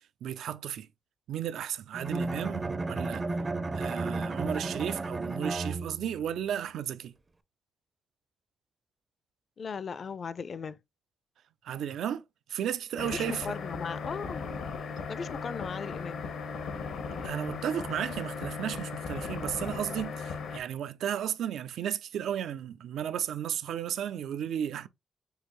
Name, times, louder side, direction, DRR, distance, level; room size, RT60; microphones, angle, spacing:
voice 1, 0.2-0.9 1.3-3.2 3.7-7.1 11.6-12.2 12.5-13.5 17.2-24.9, right 9 dB, 85° right, 0.4 m, -34 dB
Bowed string instrument, 1.9-6.2, right 3 dB, 25° right, 0.4 m, -33 dB
voice 2, 9.6-10.8 13.0-14.5 15.1-16.2, left 6 dB, 45° left, 0.4 m, -37 dB
sound 1, 13.0-20.6, left 5 dB, 80° left, 1.0 m, -37 dB
6.3 x 2.7 x 3.0 m
cardioid pair, 125°, 0 cm